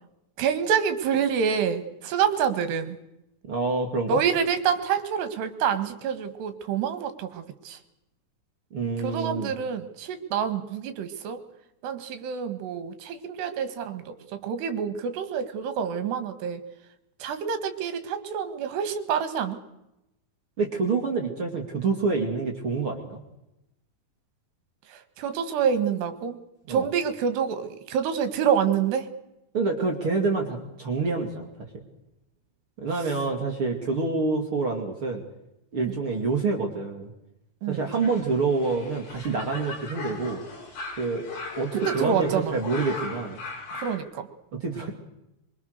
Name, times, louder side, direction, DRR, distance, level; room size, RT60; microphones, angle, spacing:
voice 1, 0.4-3.0 4.1-7.8 9.0-11.4 11.8-16.6 17.2-19.6 24.9-26.4 26.7-29.1 35.8-35.9 37.6-37.8 41.7-42.6 43.7-44.3, right 7 dB, 75° right, 10 dB, 3.7 m, -27 dB
voice 2, 3.4-4.2 8.7-9.5 20.6-23.2 26.7-26.9 29.5-31.5 32.8-35.2 35.7-37.1 37.7-40.4 41.0-41.3 41.6-43.4 44.5-44.9, right 4 dB, 35° right, 1 dB, 2.6 m, -27 dB
sound 1, 37.7-44.0, left 3 dB, 65° left, 8.0 m, -38 dB
24.0 x 23.5 x 6.6 m, 0.90 s
omnidirectional pair, 5.1 m